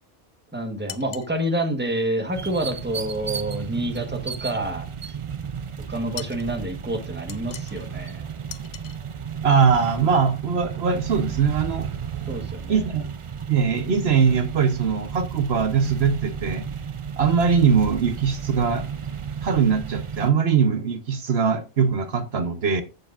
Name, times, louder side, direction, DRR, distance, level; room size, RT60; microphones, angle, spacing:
voice 1, 0.5-5.1 5.9-8.2 12.3-12.8, right 1 dB, 10° right, 1.3 m, -28 dB
sound 1, 0.9-1.3 6.2-6.5 7.3-7.9 8.5-9.0, left 10 dB, 85° left, 1.0 m, -39 dB
sound 2, 2.3-20.3, right 7 dB, 40° right, 0.4 m, -33 dB
voice 2, 9.4-11.9 12.7-13.1 13.5-16.7 17.2-18.9 19.4-22.8, right 6 dB, 65° right, 1.1 m, -21 dB
14.0 x 6.7 x 2.5 m
omnidirectional pair, 1.1 m